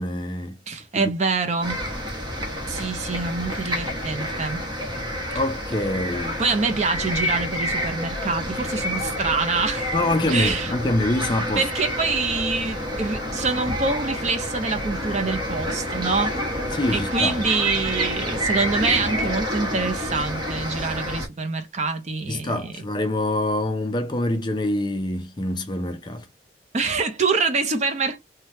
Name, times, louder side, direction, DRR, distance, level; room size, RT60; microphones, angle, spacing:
voice 1, 0.0-0.6 0.9-1.1 5.3-6.4 9.9-11.6 16.7-17.3 22.3-26.2, left 1 dB, 25° left, 0.5 m, -25 dB
voice 2, 0.7-1.8 2.7-4.6 5.3-5.4 6.4-9.9 10.3-10.7 11.5-16.3 16.9-22.8 26.7-28.2, right 4 dB, 40° right, 0.6 m, -25 dB
sound 1, 1.6-21.3, equal, 25° right, 0.9 m, -28 dB
sound 2, 11.8-17.5, left 2 dB, 55° left, 0.9 m, -46 dB
3.3 x 2.2 x 2.7 m
head